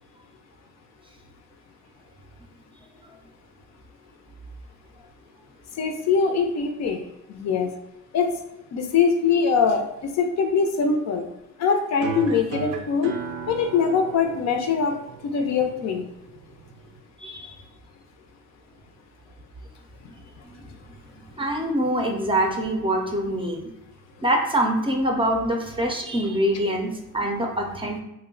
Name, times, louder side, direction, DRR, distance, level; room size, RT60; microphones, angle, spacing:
voice 1, 5.8-7.0 7.3-7.7 8.1-8.3 8.7-11.3 11.6-13.2 13.5-15.0 15.2-16.0, left 5 dB, 65° left, 5 dB, 0.5 m, -22 dB
sound 1, 12.0-17.0, right 6 dB, 85° right, 0.5 m, -35 dB
voice 2, 17.2-17.6 21.4-23.7 24.2-28.0, right 1 dB, 20° right, 1 dB, 0.5 m, -24 dB
2.8 x 2.1 x 3.7 m, 0.89 s
cardioid pair, 90°, 30 cm